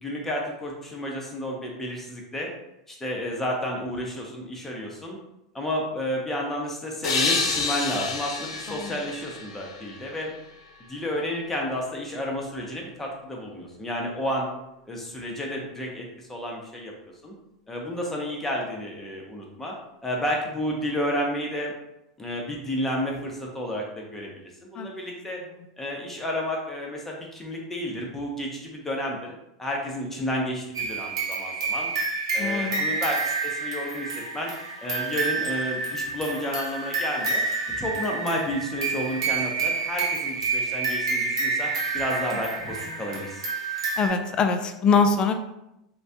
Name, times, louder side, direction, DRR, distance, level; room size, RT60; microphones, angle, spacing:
voice 1, 0.0-2.5 2.9-5.2 5.5-10.3 10.9-14.5 14.9-16.9 17.2-17.3 17.7-19.7 20.0-21.7 22.2-25.4 25.8-29.3 29.6-31.9 32.3-34.5 34.8-37.4 37.8-43.4, equal, 10° left, -1 dB, 0.8 m, -31 dB
sound 1, 7.0-10.5, left 4 dB, 65° left, 0.6 m, -29 dB
sound 2, 30.7-44.1, right 4 dB, 70° right, 0.8 m, -29 dB
voice 2, 32.4-32.9 44.0-45.3, left 5 dB, 30° left, 7 dB, 0.3 m, -23 dB
3.2 x 2.2 x 2.7 m, 0.88 s
figure-of-eight pair, 85°, 3 cm